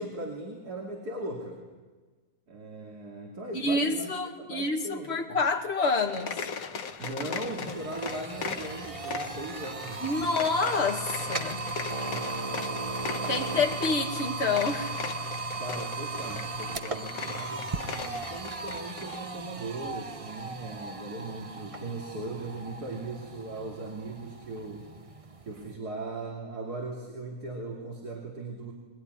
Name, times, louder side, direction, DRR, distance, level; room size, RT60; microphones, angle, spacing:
voice 1, 0.0-1.7 2.5-4.1 4.4-5.4 7.0-10.0 12.1-12.9 15.6-24.8 25.4-28.7, right 2 dB, 85° right, 3.3 m, -38 dB
voice 2, 3.5-6.4 10.0-11.7 13.3-15.0, left 3 dB, 40° left, 2.3 m, -28 dB
sound 1, 6.0-19.2, left 6 dB, 65° left, 1.5 m, -39 dB
sound 2, 6.3-6.4 6.7-25.7, right 3 dB, 25° right, 0.9 m, -37 dB
23.0 x 21.5 x 9.7 m
omnidirectional pair, 1.6 m